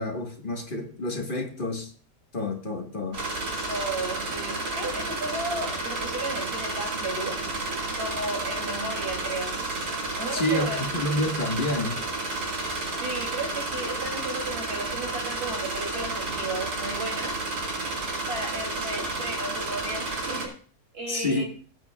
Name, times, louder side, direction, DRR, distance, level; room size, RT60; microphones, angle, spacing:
voice 1, 0.0-1.9 2.3-3.2 10.3-12.0 21.1-21.4, left 1 dB, 30° left, 2 dB, 1.7 m, -28 dB
sound 1, 3.1-20.5, right 2 dB, 70° right, 2.6 m, -31 dB
voice 2, 3.7-7.4 7.9-9.6 10.2-11.1 13.0-17.8 18.3-20.5 20.9-21.4, right 2 dB, 35° right, 0 dB, 3.3 m, -34 dB
17.5 x 9.1 x 2.4 m, 0.41 s
omnidirectional pair, 1.8 m